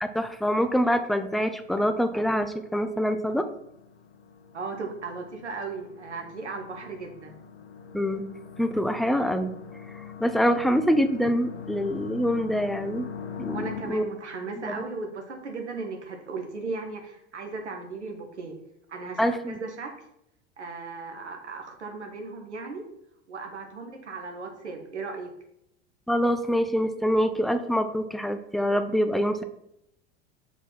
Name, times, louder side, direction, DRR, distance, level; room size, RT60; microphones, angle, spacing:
voice 1, 0.0-3.5 7.9-8.3 8.6-9.5 10.2-13.1 13.4-14.0 14.6-14.8 19.2-19.6 26.1-29.4, equal, ahead, 8 dB, 0.4 m, -25 dB
sound 1, 0.9-13.8, left 7 dB, 80° left, 0.9 m, -43 dB
voice 2, 4.5-7.3 13.5-18.6 18.9-19.9 20.6-22.8 23.3-25.3, right 4 dB, 80° right, 4 dB, 1.4 m, -36 dB
5.6 x 4.1 x 6.1 m, 0.78 s
figure-of-eight pair, 85°, 34 cm